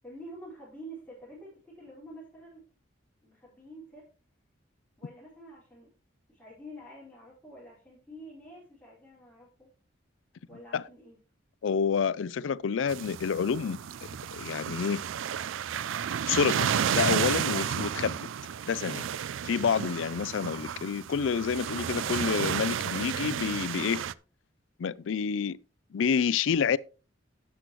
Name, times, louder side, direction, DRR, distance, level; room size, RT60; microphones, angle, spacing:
voice 1, 0.0-2.6 3.2-4.1 5.0-5.9 6.3-9.7 10.5-11.2, right 1 dB, 5° left, 4.8 m, -48 dB
voice 2, 11.6-13.8 14.3-15.0 16.3-18.2 18.7-19.1 19.4-24.0 24.8-25.6 25.9-26.8, left 6 dB, 80° left, 0.4 m, -28 dB
sound 1, 12.9-24.1, right 8 dB, 90° right, 0.4 m, -32 dB
12.0 x 8.2 x 3.1 m
head